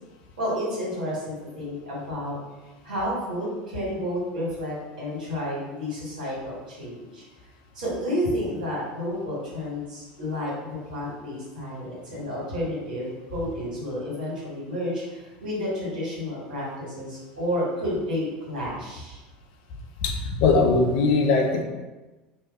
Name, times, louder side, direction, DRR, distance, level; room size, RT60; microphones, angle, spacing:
voice 1, 0.4-2.4 2.8-7.2 7.7-10.5 10.9-19.2, equal, 80° right, -7 dB, 1.4 m, -31 dB
voice 2, 20.0-21.6, left 3 dB, 65° left, 3 dB, 0.5 m, -20 dB
2.8 x 2.2 x 3.5 m, 1.2 s
hypercardioid pair, 85°, 4 cm